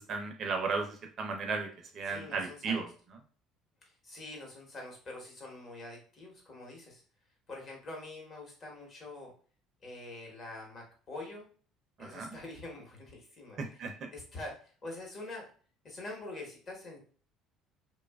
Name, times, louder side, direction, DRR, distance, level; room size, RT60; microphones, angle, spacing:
voice 1, 0.0-1.7 1.9-2.9 12.0-12.4 13.6-14.1, right 4 dB, 45° right, 4 dB, 0.5 m, -35 dB
voice 2, 2.1-2.8 4.0-7.0 7.5-9.3 9.8-11.5 12.0-13.6 14.1-15.5 15.8-17.0, left 2 dB, 35° left, -1 dB, 1.0 m, -45 dB
2.7 x 2.3 x 2.2 m, 0.42 s
cardioid pair, 135°, 0 cm